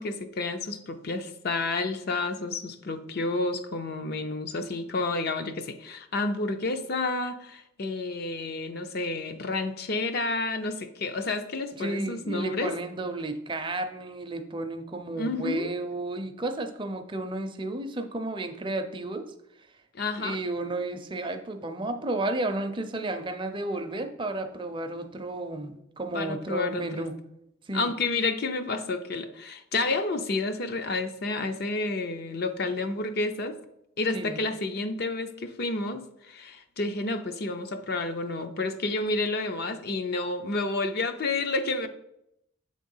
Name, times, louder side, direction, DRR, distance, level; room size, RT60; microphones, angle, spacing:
voice 1, 0.0-12.7 15.1-15.7 19.9-20.4 26.1-27.1 27.7-33.6 34.0-41.9, left 3 dB, 50° left, 8 dB, 0.5 m, -30 dB
voice 2, 11.7-19.3 20.2-27.2 27.7-27.9 34.1-34.4, right 2 dB, 25° right, 7 dB, 0.5 m, -32 dB
7.6 x 3.8 x 5.4 m, 0.80 s
head